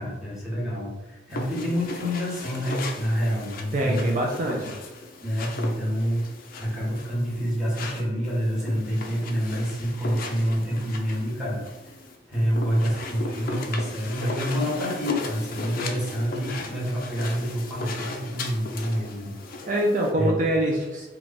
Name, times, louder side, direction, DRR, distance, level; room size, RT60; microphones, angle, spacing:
voice 1, 0.0-4.1 5.2-6.2 6.5-11.9 12.3-19.3 19.6-19.7 20.2-20.5, equal, 5° right, -6 dB, 1.1 m, -27 dB
sound 1, 1.3-20.1, left 3 dB, 50° left, 0.4 m, -37 dB
voice 2, 3.7-4.7 19.7-21.1, right 1 dB, 40° right, -1 dB, 0.4 m, -24 dB
3.3 x 2.3 x 3.9 m, 1.1 s
head